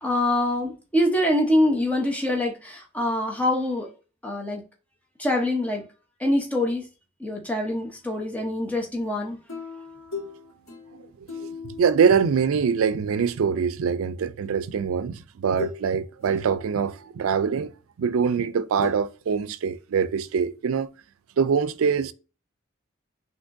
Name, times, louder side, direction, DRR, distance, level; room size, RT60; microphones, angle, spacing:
voice 1, 0.0-3.9 4.2-4.6 5.2-5.9 6.2-6.9 7.2-9.4, left 1 dB, 5° left, 0.8 m, -24 dB
sound 1, 9.5-13.1 14.5-14.6 15.6-15.9 16.2-17.1 18.8-19.0, left 5 dB, 85° left, 1.8 m, -38 dB
voice 2, 11.4-17.7 18.0-20.9 21.4-22.1, right 6 dB, 90° right, 0.4 m, -24 dB
6.1 x 2.9 x 2.6 m
head